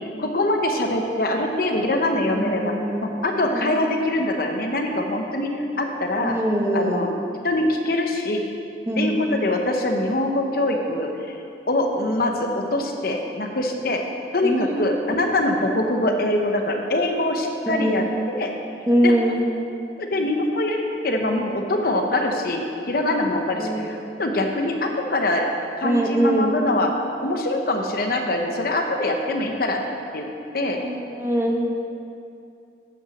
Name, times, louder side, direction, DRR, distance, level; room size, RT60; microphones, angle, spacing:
voice 1, 0.2-2.7 3.0-6.4 6.7-7.1 7.4-8.4 9.0-11.1 11.7-14.0 14.3-18.0 18.4-18.5 19.0-19.1 20.0-25.5 25.8-26.9 27.2-29.8 30.1-30.2 30.5-30.8, left 1 dB, 55° left, 3 dB, 0.8 m, -23 dB
voice 2, 2.2-3.1 3.5-3.8 6.2-7.1 8.9-9.2 12.5-12.7 14.4-15.2 17.6-18.1 18.9-19.4 23.5-23.9 25.8-26.5 30.7-31.7, right 1 dB, 15° right, 0 dB, 0.9 m, -23 dB
8.7 x 6.2 x 6.2 m, 2.5 s
head